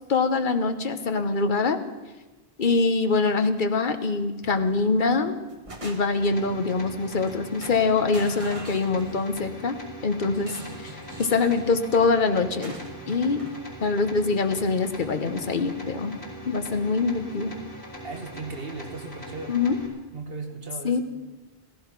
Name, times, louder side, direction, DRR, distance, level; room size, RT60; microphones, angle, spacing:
voice 1, 0.1-1.8 2.6-5.4 5.8-9.8 10.0-10.6 11.2-12.7 13.1-13.4 13.8-16.2 16.4-17.5 19.5-19.8 20.8-21.0, left 4 dB, 50° left, 9 dB, 1.2 m, -24 dB
sound 1, 4.4-4.8 5.2-6.3 7.1-7.3 7.6-9.4 10.4-11.7 12.6-13.6, right 2 dB, 30° right, 1.6 m, -43 dB
sound 2, 6.2-19.9, equal, 70° left, 3.8 m, -42 dB
voice 2, 18.0-19.6 20.1-21.0, right 3 dB, 60° right, 4 dB, 1.9 m, -36 dB
16.0 x 15.0 x 6.0 m, 1.2 s
omnidirectional pair, 1.1 m